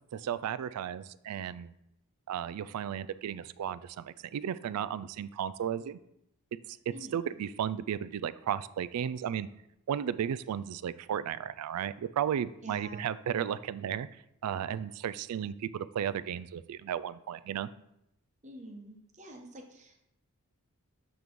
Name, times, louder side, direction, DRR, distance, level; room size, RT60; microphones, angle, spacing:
voice 1, 0.1-1.7 2.3-6.0 6.7-6.8 7.1-9.5 9.9-14.1 14.4-17.7, right 9 dB, 80° right, 16 dB, 0.3 m, -34 dB
voice 2, 6.9-7.3 12.6-13.1 18.4-20.0, equal, 35° right, 2 dB, 1.1 m, -47 dB
7.9 x 3.2 x 5.2 m, 0.82 s
head